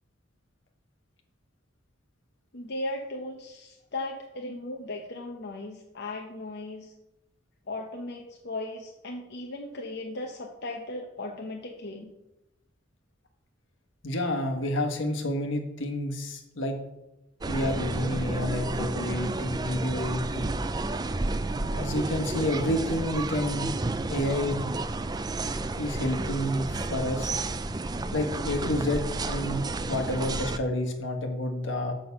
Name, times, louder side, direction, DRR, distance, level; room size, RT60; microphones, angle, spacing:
voice 1, 2.5-6.9 7.7-12.1, left 2 dB, 60° left, 1 dB, 0.8 m, -37 dB
voice 2, 14.0-16.8 17.5-20.5 21.7-23.7 24.1-24.6 25.8-27.4 28.1-31.9, left 1 dB, 80° left, 4 dB, 1.5 m, -29 dB
sound 1, 17.4-30.6, right 2 dB, 20° right, 0.4 m, -31 dB
6.7 x 6.1 x 6.9 m, 0.93 s
head